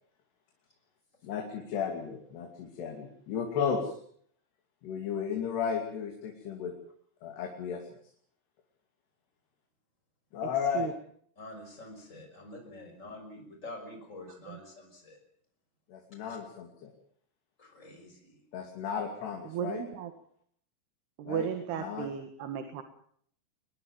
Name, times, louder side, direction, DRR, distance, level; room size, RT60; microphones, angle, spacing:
voice 1, 1.2-4.0 4.8-6.7 7.2-7.8 10.3-10.9 15.9-16.9 18.5-19.8 21.2-21.5 21.8-22.1, left 7 dB, 90° left, 3 dB, 4.7 m, -34 dB
voice 2, 11.4-15.2 16.3-16.4 17.6-18.4, left 2 dB, 20° left, 4 dB, 6.0 m, -47 dB
voice 3, 19.4-20.1 21.2-22.8, right 8 dB, 80° right, 8 dB, 3.8 m, -35 dB
24.0 x 20.5 x 7.3 m, 0.62 s
omnidirectional pair, 4.6 m